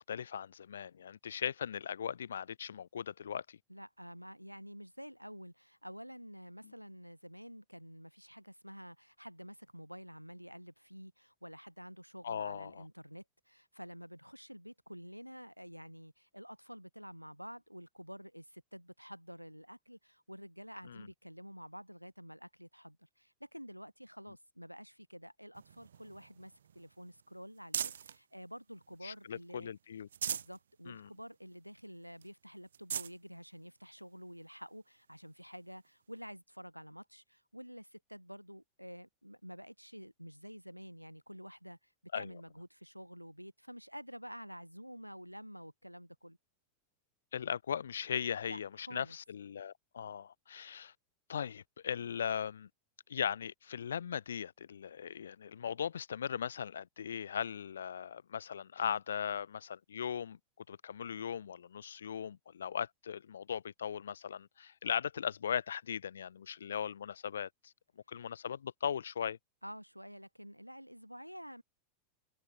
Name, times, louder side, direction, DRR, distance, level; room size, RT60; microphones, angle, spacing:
voice 1, 0.0-3.6 6.6-6.7 12.2-12.8 20.9-21.1 29.0-30.1 30.9-31.1 42.1-42.3 47.3-50.9 51.3-52.7 53.1-60.4 60.7-67.7 68.1-69.4, left 8 dB, 65° left, 0.8 m, -38 dB
voice 2, 3.7-29.8 30.3-46.4 48.5-49.2 69.6-71.6, equal, 90° right, 0.7 m, -49 dB
sound 1, 25.5-28.2 28.7-29.5 29.9-30.6 31.0-31.1 31.5-31.6 32.2-32.3 32.7-33.2 34.0-34.1 35.8-35.9, right 8 dB, 65° right, 0.3 m, -41 dB
figure-of-eight pair, 90°, 0 cm